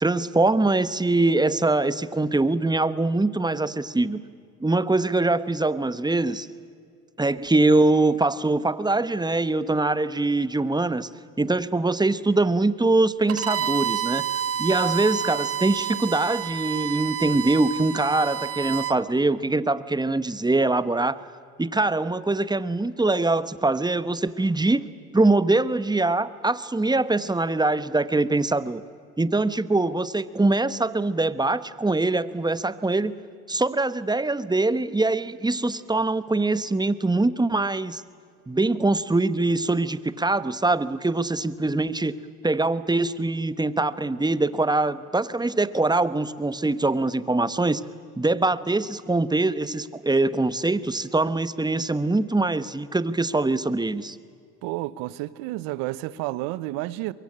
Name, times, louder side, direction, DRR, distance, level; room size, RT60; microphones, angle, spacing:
voice 1, 0.0-4.2 4.6-6.5 7.2-11.1 11.4-14.2 14.6-21.2 21.6-24.9 25.1-28.8 29.2-33.1 33.5-38.0 38.5-47.8 48.2-54.2, right 2 dB, 10° right, 1.2 m, -23 dB
Bowed string instrument, 13.3-19.0, right 9 dB, 45° right, 1.1 m, -29 dB
voice 2, 54.6-57.1, right 17 dB, 85° right, 0.9 m, -30 dB
23.0 x 23.0 x 8.7 m
supercardioid pair, 65°, 34 cm